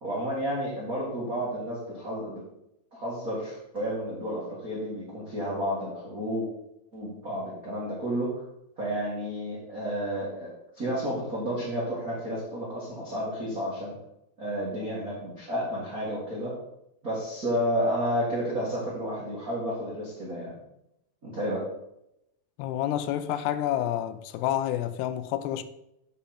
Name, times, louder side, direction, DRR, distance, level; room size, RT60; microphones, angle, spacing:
voice 1, 0.0-2.4 2.9-6.5 6.9-8.4 8.8-10.5 10.7-13.9 14.4-16.6 17.0-20.5 21.2-21.6, equal, 45° right, 1.1 m, -31 dB
voice 2, 22.6-25.6, left 12 dB, 85° left, 2.7 m, -29 dB
8.4 x 5.8 x 4.3 m
omnidirectional pair, 4.8 m